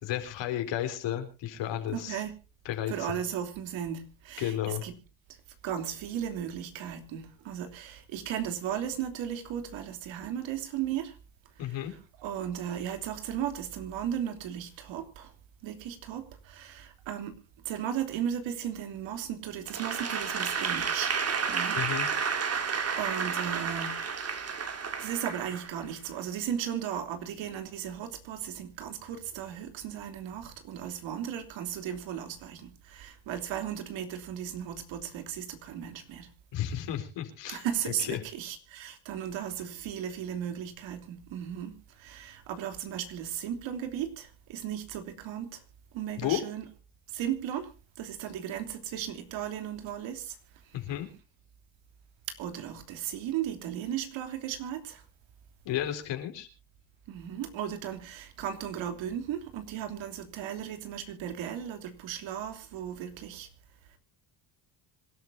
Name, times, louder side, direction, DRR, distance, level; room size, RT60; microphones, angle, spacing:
voice 1, 0.0-2.2 2.6-2.9 4.4-4.8 11.6-11.9 21.7-22.1 36.5-37.6 38.1-38.2 46.2-46.4 50.7-51.1 55.6-56.5, left 11 dB, 65° left, 4.6 m, -32 dB
voice 2, 1.9-2.3 2.9-4.9 5.3-5.4 5.6-11.2 11.6-15.3 15.6-17.3 17.6-21.2 21.5-21.8 22.1-22.4 23.0-24.0 25.0-36.3 37.5-45.6 45.9-46.7 47.1-47.7 48.0-50.4 50.6-51.0 52.4-55.0 57.1-63.5 63.9-64.0, right 9 dB, 70° right, 3.3 m, -36 dB
Applause / Crowd, 19.7-26.1, right 6 dB, 30° right, 2.3 m, -31 dB
26.0 x 12.5 x 2.7 m
cardioid pair, 115°, 47 cm